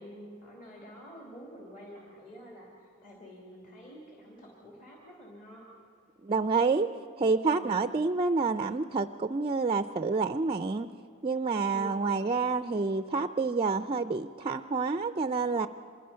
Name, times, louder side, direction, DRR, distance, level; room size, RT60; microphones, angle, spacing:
voice 1, 0.0-5.7 7.4-7.9 11.6-12.1, equal, 40° left, -2 dB, 2.9 m, -48 dB
voice 2, 6.2-6.9 7.2-10.9 11.2-15.7, right 4 dB, 25° right, 11 dB, 0.4 m, -28 dB
25.0 x 21.5 x 5.7 m, 2.4 s
head